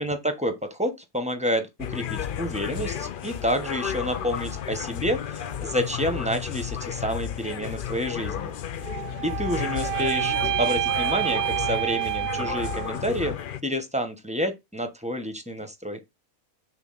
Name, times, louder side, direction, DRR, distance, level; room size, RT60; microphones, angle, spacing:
voice 1, 0.0-8.5 9.2-13.3 13.6-16.0, equal, 5° right, 1.0 m, -29 dB
sound 1, 1.8-13.6, left 9 dB, 60° left, 0.5 m, -32 dB
sound 2, 8.8-13.1, right 14 dB, 70° right, 0.9 m, -28 dB
5.8 x 4.0 x 5.7 m
omnidirectional pair, 1.5 m